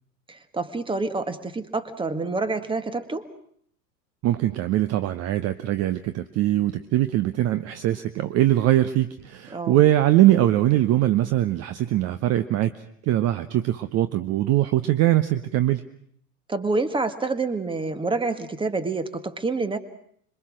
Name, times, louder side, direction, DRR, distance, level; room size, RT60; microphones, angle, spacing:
voice 1, 0.3-3.3 9.5-9.8 16.5-19.8, right 3 dB, 10° right, 11 dB, 1.7 m, -27 dB
voice 2, 4.2-12.7 13.0-15.8, right 14 dB, 35° right, 11 dB, 0.9 m, -22 dB
26.0 x 23.0 x 6.3 m, 0.67 s
figure-of-eight pair, 85°, 48 cm